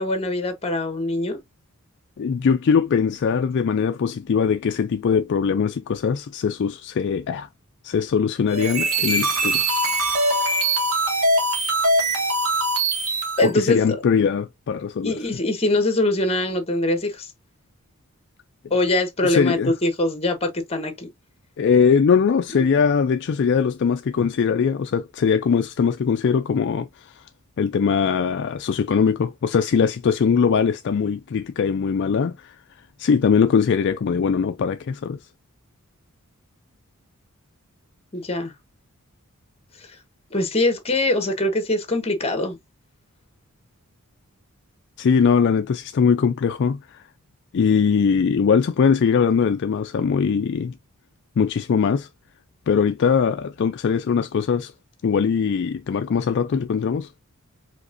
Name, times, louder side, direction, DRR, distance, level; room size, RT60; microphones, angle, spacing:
voice 1, 0.0-1.4 13.4-13.9 15.0-17.3 18.7-21.1 22.5-22.8 38.1-38.5 40.3-42.6, left 2 dB, 25° left, 1.3 m, -23 dB
voice 2, 2.2-7.5 7.8-9.6 13.4-15.3 19.2-19.7 21.6-27.2 27.6-32.6 33.0-35.2 45.0-47.0 47.5-50.8 51.4-52.1 52.7-54.7 55.0-57.1, left 6 dB, 50° left, 0.3 m, -21 dB
sound 1, 8.5-13.5, right 2 dB, 65° right, 1.9 m, -22 dB
5.1 x 3.6 x 2.5 m
head